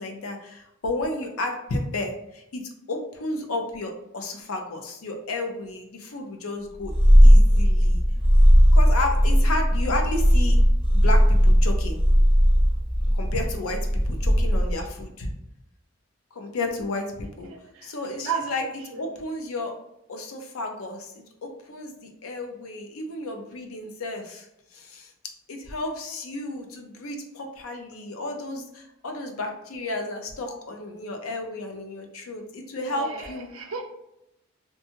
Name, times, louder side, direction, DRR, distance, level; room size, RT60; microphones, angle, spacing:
voice 1, 0.0-2.6 2.9-6.9 7.2-8.0 8.7-10.6 10.9-12.0 13.1-15.3 16.3-17.5 17.8-18.6 19.0-19.7 20.1-21.1 21.4-24.5 24.7-33.5, left 2 dB, 85° left, 3 dB, 0.5 m, -32 dB
Purr, 6.8-14.9, equal, 20° left, 0.4 m, -17 dB
voice 2, 17.5-17.9 18.2-19.0 32.9-33.8, right 6 dB, 75° right, 3 dB, 0.5 m, -34 dB
2.6 x 2.2 x 2.8 m, 0.82 s
head